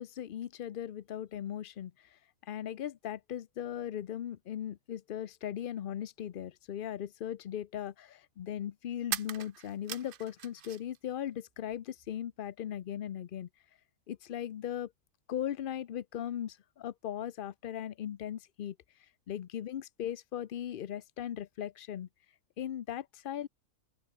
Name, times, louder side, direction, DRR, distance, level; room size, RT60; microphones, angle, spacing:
voice 1, 0.0-13.5 14.1-14.9 15.3-18.8 19.3-22.1 22.6-23.5, left 10 dB, 70° left, 0.5 m, -38 dB
sound 1, 6.8-6.9 9.0-11.0 11.3-12.1, right 10 dB, 65° right, 0.5 m, -41 dB
open air
omnidirectional pair, 1.6 m